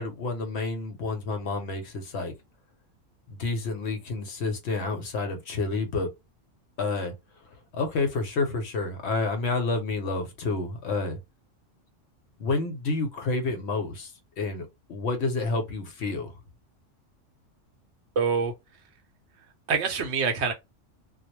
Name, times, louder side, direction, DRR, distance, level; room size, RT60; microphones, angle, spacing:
voice 1, 0.0-2.3 3.3-6.1 6.8-7.1 7.7-11.2 12.4-14.1 14.4-16.3, left 3 dB, 65° left, 0.8 m, -29 dB
voice 2, 18.2-18.5 19.7-20.5, right 5 dB, 65° right, 0.8 m, -25 dB
2.2 x 2.0 x 2.9 m
omnidirectional pair, 1.3 m